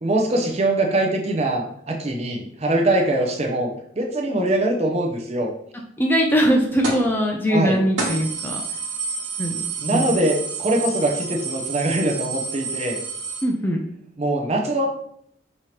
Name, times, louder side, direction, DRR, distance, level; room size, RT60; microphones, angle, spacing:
voice 1, 0.0-5.5 7.5-7.8 9.8-13.0 14.2-14.9, right 1 dB, 35° right, 2 dB, 0.6 m, -22 dB
voice 2, 6.0-8.6 9.4-10.1 13.4-13.8, equal, 10° left, 1 dB, 0.4 m, -21 dB
sound 1, 6.8-7.1 7.5-7.6 8.0-13.4, right 4 dB, 80° right, 1.3 m, -29 dB
5.4 x 2.9 x 3.2 m, 0.69 s
head